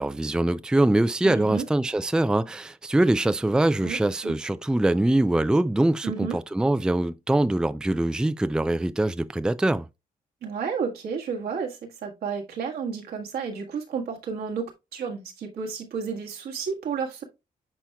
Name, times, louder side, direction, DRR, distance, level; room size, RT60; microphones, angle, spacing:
voice 1, 0.0-9.9, right 1 dB, 5° right, 0.4 m, -23 dB
voice 2, 1.2-1.6 3.8-4.0 4.2-4.3 6.0-6.4 10.4-14.7 14.9-17.2, right 6 dB, 85° right, 1.7 m, -31 dB
10.0 x 4.4 x 2.3 m
cardioid pair, 65°, 16 cm